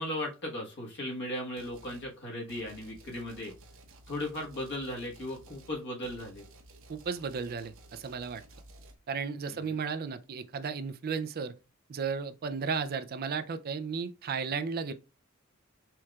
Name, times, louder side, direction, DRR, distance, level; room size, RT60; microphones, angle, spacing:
voice 1, 0.0-3.5 4.1-6.4 9.5-9.8, left 1 dB, 55° left, 1.4 m, -37 dB
sound 1, 1.6-2.1 2.5-9.0, right 1 dB, 70° right, 1.0 m, -54 dB
voice 2, 6.9-8.4 9.1-11.5 11.9-14.9, right 5 dB, 45° right, 0.4 m, -34 dB
4.6 x 4.5 x 2.4 m
head